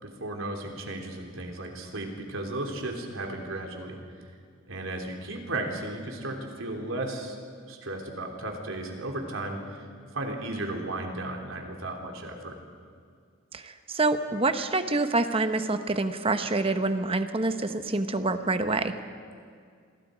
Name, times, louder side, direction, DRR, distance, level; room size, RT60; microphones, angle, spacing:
voice 1, 0.0-4.2 4.7-7.4 7.7-9.8 10.1-12.5, right 2 dB, 80° right, 2 dB, 3.3 m, -35 dB
voice 2, 13.5-18.9, right 2 dB, 30° right, 9 dB, 1.0 m, -26 dB
27.0 x 21.5 x 5.1 m, 2.1 s
head